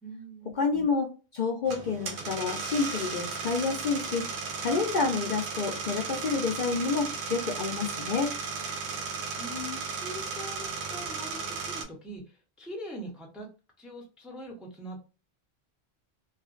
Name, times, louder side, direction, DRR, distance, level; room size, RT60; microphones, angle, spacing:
voice 1, 0.0-0.9 9.0-13.5 13.8-15.0, equal, ahead, -1 dB, 0.5 m, -42 dB
voice 2, 0.6-4.3 4.6-8.4, left 4 dB, 55° left, 0 dB, 0.6 m, -29 dB
sound 1, 1.7-11.8, right 5 dB, 85° right, 0.9 m, -35 dB
2.4 x 2.1 x 2.4 m, 0.33 s
omnidirectional pair, 1.1 m